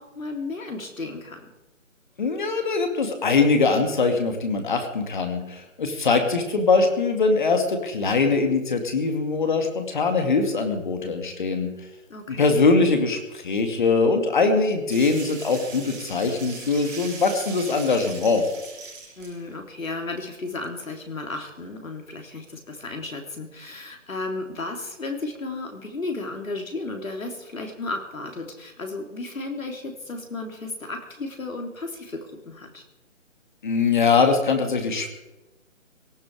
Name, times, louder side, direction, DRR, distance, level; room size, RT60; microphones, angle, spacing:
voice 1, 0.0-1.5 12.1-12.7 19.2-32.8, left 3 dB, 90° left, 4 dB, 3.6 m, -34 dB
voice 2, 2.2-11.7 12.3-18.4 33.6-35.1, left 4 dB, 35° left, 6 dB, 2.4 m, -22 dB
sound 1, 14.9-19.4 19.8-19.9 21.0-21.1 21.3-21.4, right 4 dB, 5° right, 2.8 m, -40 dB
18.0 x 15.5 x 4.8 m, 1.0 s
hypercardioid pair, 170°, 39 cm